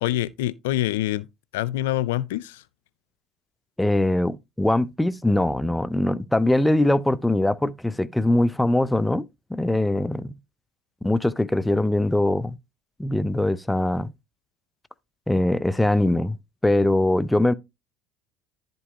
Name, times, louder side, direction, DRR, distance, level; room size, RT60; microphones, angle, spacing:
voice 1, 0.0-1.3 1.5-2.6, left 14 dB, 90° left, 0.4 m, -25 dB
voice 2, 3.8-10.3 11.0-12.6 13.0-14.1 15.3-16.4 16.6-17.5, left 1 dB, 5° left, 0.5 m, -22 dB
11.0 x 5.3 x 2.8 m
supercardioid pair, 85°, 0 cm